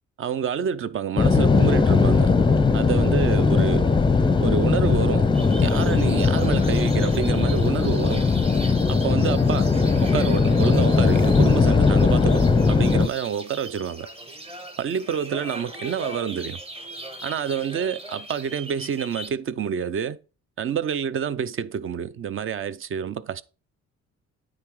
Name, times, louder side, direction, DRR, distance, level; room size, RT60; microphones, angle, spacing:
voice 1, 0.2-2.3 2.7-3.9 4.4-5.3 5.6-8.2 8.9-9.7 10.0-14.1 14.8-16.6 17.2-20.2 20.6-23.4, right 7 dB, 45° right, 0.6 m, -28 dB
sound 1, 1.2-13.1, left 4 dB, 15° left, 0.6 m, -19 dB
sound 2, 5.3-19.3, right 1 dB, 20° right, 1.4 m, -39 dB
9.4 x 3.9 x 4.8 m
cardioid pair, 90°, 30 cm